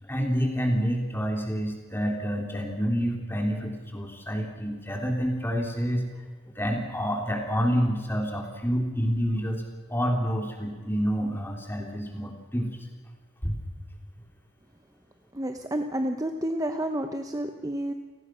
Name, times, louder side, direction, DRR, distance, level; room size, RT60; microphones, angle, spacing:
voice 1, 0.0-6.0 6.6-9.6 9.9-12.9 13.4-13.6, equal, 10° left, 1 dB, 3.6 m, -28 dB
voice 2, 15.3-17.9, right 1 dB, 15° right, 6 dB, 0.9 m, -30 dB
29.5 x 19.0 x 6.3 m, 1.5 s
head